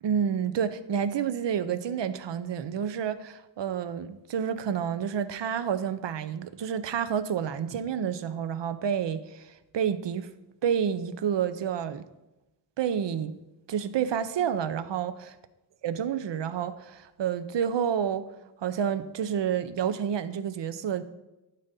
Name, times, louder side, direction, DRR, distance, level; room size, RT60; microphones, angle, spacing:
voice 1, 0.0-10.3 10.6-12.0 12.8-13.4 13.7-15.3 15.8-18.3 18.6-21.0, right 8 dB, 80° right, 0.6 m, -29 dB
11.5 x 4.1 x 4.0 m
wide cardioid pair, 80°, 43 cm